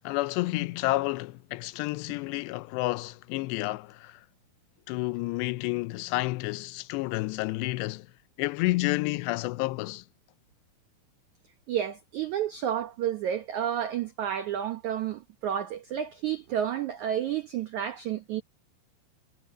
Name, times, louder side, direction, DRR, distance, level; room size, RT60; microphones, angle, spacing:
voice 1, 0.0-4.2 4.9-8.1 8.4-10.0, left 20 dB, 80° left, 2.7 m, -30 dB
voice 2, 11.7-18.4, right 10 dB, 90° right, 1.6 m, -31 dB
omnidirectional pair, 5.0 m